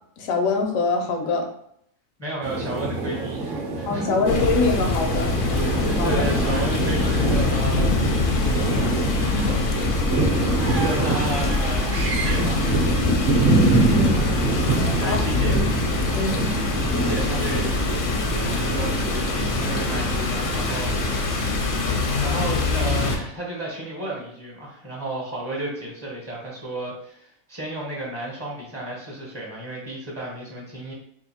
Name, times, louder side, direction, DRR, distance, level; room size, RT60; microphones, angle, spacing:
voice 1, 0.2-1.5 3.9-5.3 6.0-6.2 13.8-14.2 15.0-15.7 16.1-16.5, left 3 dB, 85° left, 4 dB, 1.0 m, -24 dB
voice 2, 2.2-4.1 5.4-5.6 6.0-8.0 8.6-9.6 10.7-13.2 14.7-15.6 16.9-17.7 18.5-21.7 22.2-30.9, right 1 dB, 20° right, -4 dB, 0.4 m, -33 dB
sound 1, 2.4-21.2, right 2 dB, 50° right, 0.7 m, -25 dB
sound 2, 4.3-23.2, left 3 dB, 55° left, 0.6 m, -24 dB
2.8 x 2.4 x 4.1 m, 0.69 s
omnidirectional pair, 1.4 m